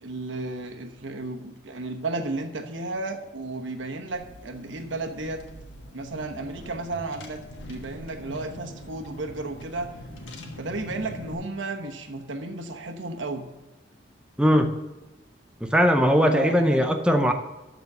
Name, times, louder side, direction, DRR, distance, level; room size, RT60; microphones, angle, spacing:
voice 1, 0.0-5.4 5.9-7.4 7.7-9.9 10.6-13.5 16.2-16.9, right 2 dB, 90° right, 5 dB, 1.1 m, -33 dB
Car / Engine, 4.1-11.3, left 1 dB, 85° left, 1.4 m, -43 dB
voice 2, 14.4-14.7 15.6-17.3, equal, 5° right, 5 dB, 0.5 m, -20 dB
12.0 x 4.0 x 6.8 m, 1.1 s
head